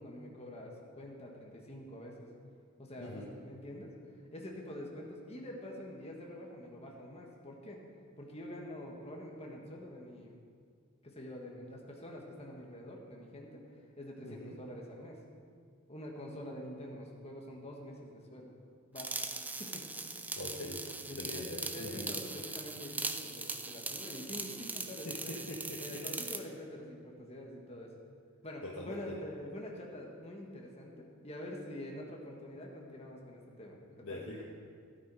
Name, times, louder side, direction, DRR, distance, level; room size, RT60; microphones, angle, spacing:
voice 1, 0.0-2.3 2.8-4.0 4.3-7.8 8.2-10.3 11.0-13.6 14.0-15.2 15.9-18.5 18.9-19.2 19.6-20.8 21.1-25.4 25.8-27.9 28.4-34.2, left 1 dB, 30° left, -1 dB, 1.7 m, -46 dB
voice 2, 14.2-14.6 20.3-20.8 21.2-22.1 25.0-26.0 28.6-29.2 34.0-34.4, left 2 dB, 85° left, -4 dB, 1.3 m, -43 dB
sound 1, 19.0-26.5, right 3 dB, 10° right, 0.4 m, -40 dB
12.0 x 12.0 x 4.9 m, 2.1 s
head